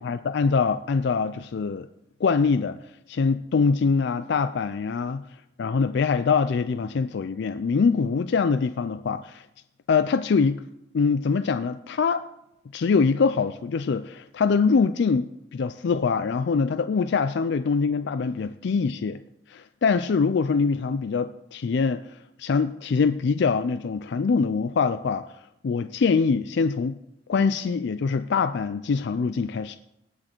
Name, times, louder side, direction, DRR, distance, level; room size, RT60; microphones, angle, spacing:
voice 1, 0.0-1.9 2.2-2.8 3.1-5.3 5.6-9.5 9.9-10.6 10.9-12.2 12.7-19.2 19.5-25.2 25.6-27.0 27.3-29.8, left 5 dB, 65° left, 12 dB, 0.4 m, -24 dB
18.5 x 6.4 x 4.5 m, 0.84 s
head